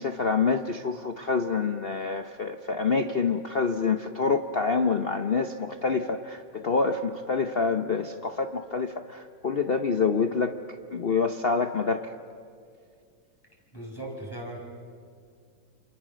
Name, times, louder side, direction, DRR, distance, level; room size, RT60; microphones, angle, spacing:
voice 1, 0.0-10.6 10.9-12.1, left 5 dB, 80° left, 7 dB, 0.5 m, -27 dB
voice 2, 13.7-14.6, right 1 dB, 10° left, 0 dB, 5.2 m, -38 dB
29.0 x 27.5 x 6.4 m, 2.2 s
omnidirectional pair, 2.3 m